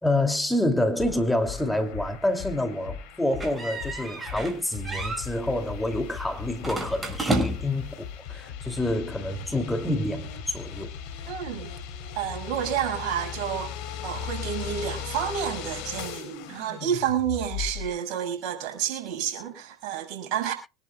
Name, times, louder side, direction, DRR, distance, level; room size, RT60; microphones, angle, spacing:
voice 1, 0.0-10.9, left 1 dB, 5° left, 2.7 m, -27 dB
sound 1, 1.0-17.9, left 7 dB, 65° left, 3.9 m, -38 dB
sound 2, 3.4-4.6 4.8-5.2 6.6-7.8, right 1 dB, 20° right, 6.7 m, -30 dB
voice 2, 11.3-11.7 12.2-13.7 14.0-20.5, right 9 dB, 60° right, 5.8 m, -30 dB
24.5 x 11.0 x 2.3 m
hypercardioid pair, 75°, 0 cm